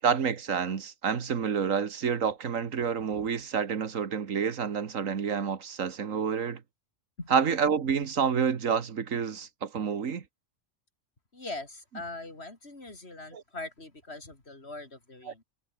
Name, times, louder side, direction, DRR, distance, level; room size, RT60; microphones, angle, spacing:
voice 1, 0.0-6.6 7.3-10.2 13.3-13.4 15.3-15.4, right 6 dB, 90° right, 1.8 m, -28 dB
voice 2, 11.3-15.4, left 2 dB, 55° left, 4.3 m, -41 dB
omnidirectional pair, 1.3 m